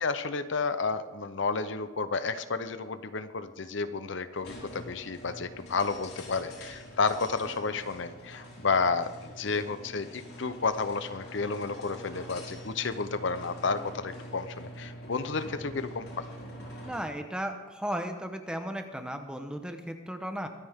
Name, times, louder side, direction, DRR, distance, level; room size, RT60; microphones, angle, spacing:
voice 1, 0.0-16.3, left 4 dB, 60° left, 11 dB, 0.7 m, -31 dB
sound 1, 4.4-17.2, equal, 85° left, 5.1 m, -45 dB
voice 2, 16.8-20.5, equal, 5° right, 6 dB, 0.9 m, -35 dB
23.5 x 9.3 x 3.6 m, 1.2 s
head